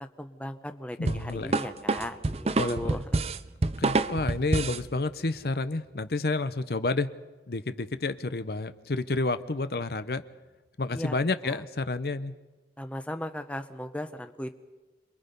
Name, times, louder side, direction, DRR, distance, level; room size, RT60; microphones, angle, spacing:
voice 1, 0.2-3.0 10.9-11.2 11.4-11.6 12.8-14.6, left 1 dB, 5° left, 8 dB, 0.9 m, -37 dB
voice 2, 1.0-1.6 2.6-3.0 3.8-7.1 7.5-10.2 10.8-12.3, left 3 dB, 60° left, 12 dB, 0.7 m, -30 dB
sound 1, 1.1-4.9, right 3 dB, 35° right, 0.6 m, -27 dB
27.5 x 22.0 x 5.3 m, 1.2 s
head